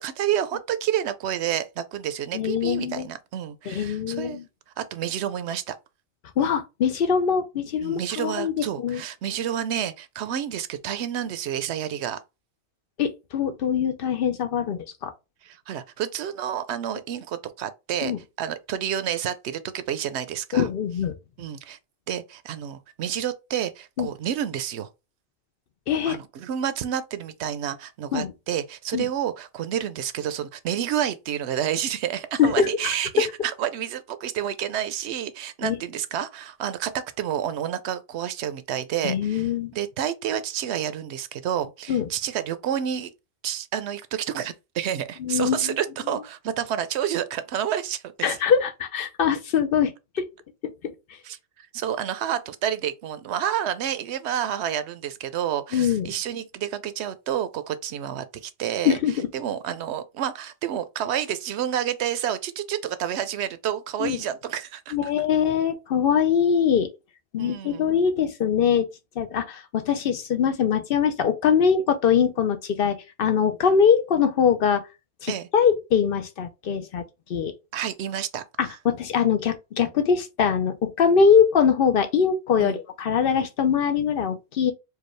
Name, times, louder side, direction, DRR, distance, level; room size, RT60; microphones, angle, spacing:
voice 1, 0.0-4.4 4.8-5.8 7.8-12.2 15.4-18.1 18.4-20.7 21.4-21.8 22.1-24.9 26.1-43.1 43.4-48.4 51.2-59.0 59.3-65.0 67.4-68.0 75.3-75.5 77.7-78.8 82.6-82.8, right 10 dB, 80° right, 0.8 m, -29 dB
voice 2, 2.3-3.1 3.7-4.4 6.4-9.0 13.0-15.1 18.0-18.2 20.5-21.1 24.0-24.1 25.9-26.2 28.1-28.3 28.9-29.1 32.4-33.3 35.6-35.8 39.0-39.7 41.9-42.1 45.2-45.8 48.2-50.3 50.6-50.7 55.7-56.1 58.8-59.3 64.0-64.2 64.9-66.9 67.3-68.9 69.2-74.8 75.2-77.0 77.3-77.5 78.6-84.7, left 7 dB, 60° left, 0.7 m, -22 dB
4.7 x 2.3 x 3.2 m
omnidirectional pair, 1.1 m